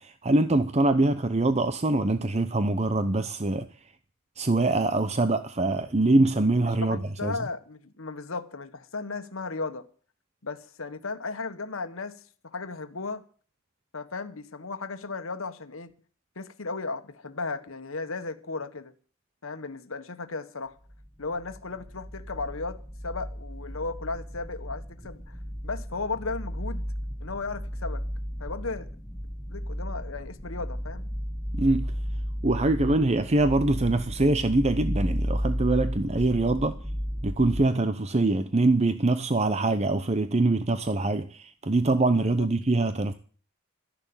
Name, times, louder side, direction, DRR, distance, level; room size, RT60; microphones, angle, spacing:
voice 1, 0.0-3.7 4.4-7.3 31.5-31.9 32.4-36.8 37.2-43.1, right 2 dB, 30° right, 0.8 m, -24 dB
voice 2, 6.6-9.9 10.4-13.2 13.9-15.9 16.3-18.9 19.4-20.8 21.2-25.4 25.6-26.9 27.2-28.0 28.4-28.9 29.5-31.1 42.4-42.5, left 3 dB, 80° left, 1.5 m, -35 dB
sound 1, 20.9-37.6, equal, 5° left, 1.1 m, -34 dB
13.5 x 11.0 x 8.9 m
head